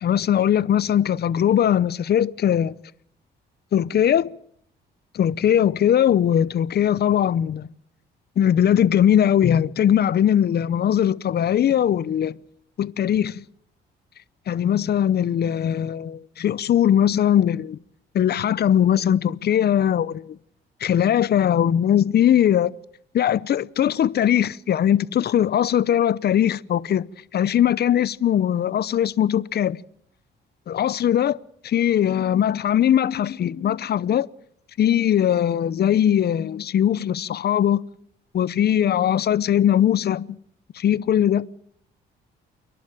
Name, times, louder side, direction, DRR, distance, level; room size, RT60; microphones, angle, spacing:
voice 1, 0.0-2.7 3.7-4.3 5.1-7.7 8.4-12.4 12.8-13.4 14.5-17.8 18.1-20.4 20.8-22.7 23.1-27.1 27.3-29.8 30.7-31.4 31.6-34.3 34.8-37.8 38.3-40.4 40.7-41.5, left 10 dB, 55° left, 0.8 m, -20 dB
29.0 x 11.5 x 8.9 m
cardioid pair, 90°, 20 cm